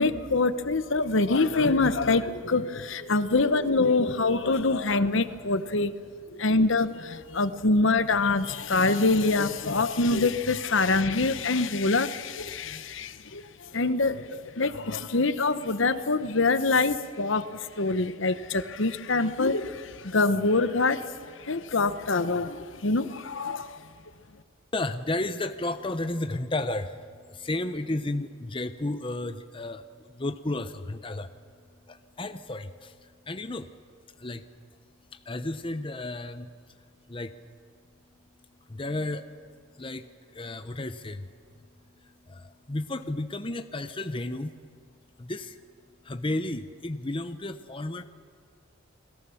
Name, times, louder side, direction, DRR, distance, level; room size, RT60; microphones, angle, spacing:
voice 1, 0.0-6.0 6.3-21.1 21.4-23.8, left 3 dB, 65° left, 12 dB, 1.0 m, -25 dB
voice 2, 24.7-31.4 31.9-33.7 34.2-34.5 35.1-37.4 38.6-39.3 39.7-44.6 45.2-45.6 46.0-48.0, left 2 dB, 25° left, 9 dB, 0.8 m, -33 dB
29.5 x 21.0 x 7.1 m, 2.1 s
head